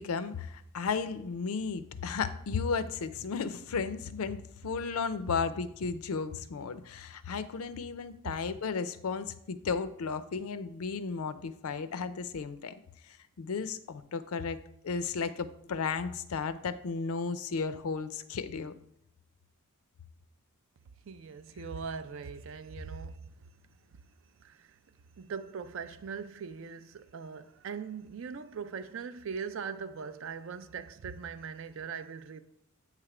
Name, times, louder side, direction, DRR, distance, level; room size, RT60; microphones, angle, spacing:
voice 1, 0.0-12.7 13.0-18.7, left 5 dB, 80° left, 0.4 m, -34 dB
voice 2, 21.1-23.2 24.4-24.7 25.2-32.4, right 6 dB, 60° right, 0.4 m, -40 dB
8.5 x 3.3 x 4.8 m
head